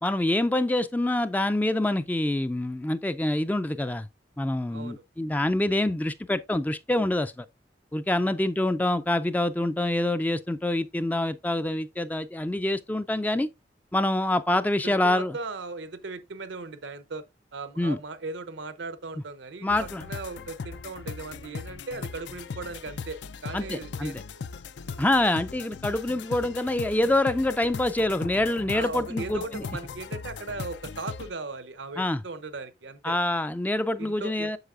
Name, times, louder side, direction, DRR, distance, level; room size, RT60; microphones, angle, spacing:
voice 1, 0.0-4.1 4.4-7.5 7.9-13.5 13.9-15.4 17.8-18.0 19.6-20.0 23.5-24.2 25.0-29.6 32.0-32.2 33.0-34.6, left 1 dB, 10° left, 0.3 m, -26 dB
voice 2, 4.7-5.0 8.2-8.3 14.8-17.2 17.5-24.2 24.8-25.0 28.7-33.2 34.0-34.6, right 3 dB, 85° right, 0.8 m, -38 dB
sound 1, 19.7-31.3, left 5 dB, 75° left, 0.4 m, -39 dB
7.9 x 6.5 x 2.4 m
head